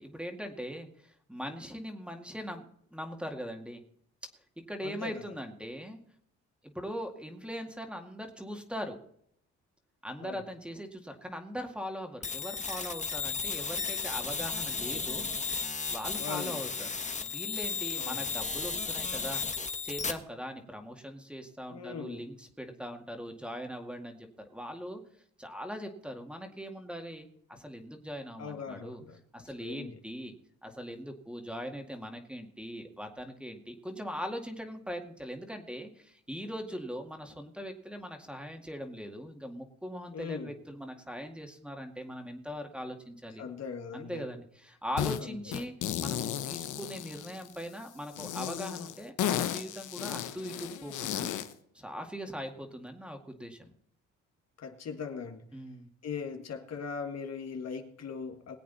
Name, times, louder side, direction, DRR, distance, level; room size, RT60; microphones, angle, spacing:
voice 1, 0.0-2.6 2.9-3.8 4.7-6.0 6.6-9.0 10.0-15.3 15.9-16.9 17.2-19.4 19.8-25.0 25.4-29.0 29.3-30.3 30.6-43.4 43.9-51.3 51.7-53.7 55.5-55.9, equal, 5° right, 4 dB, 2.1 m, -40 dB
voice 2, 4.8-5.2 10.2-10.4 16.2-16.7 18.0-18.3 21.7-22.3 28.4-29.2 29.6-30.0 40.1-40.5 43.4-44.3 45.2-45.5 54.6-55.5 56.0-58.5, left 6 dB, 55° left, 5 dB, 1.8 m, -40 dB
sound 1, 12.2-20.1, left 5 dB, 25° left, 1.3 m, -34 dB
sound 2, 45.0-45.2 45.5-47.6 48.1-51.5, left 10 dB, 80° left, 1.1 m, -34 dB
20.5 x 8.3 x 4.1 m, 0.68 s
cardioid pair, 90°, 30 cm